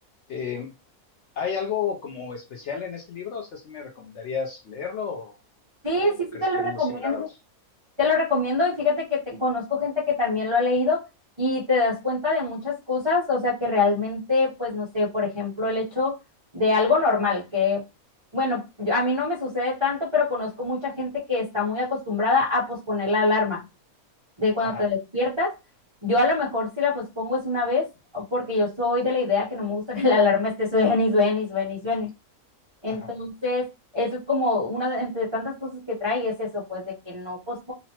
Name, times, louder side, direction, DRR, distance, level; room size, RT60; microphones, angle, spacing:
voice 1, 0.3-0.7 1.4-5.4 5.9-7.2 24.6-24.9 32.9-33.1, left 7 dB, 65° left, 1 dB, 0.7 m, -32 dB
voice 2, 5.8-7.3 8.0-11.1 11.4-16.1 16.5-17.8 18.3-23.6 24.4-25.5 26.0-27.9 28.1-32.1 32.8-33.7 33.9-37.7, left 3 dB, 30° right, -7 dB, 0.5 m, -24 dB
2.9 x 2.1 x 2.8 m, 0.26 s
omnidirectional pair, 1.6 m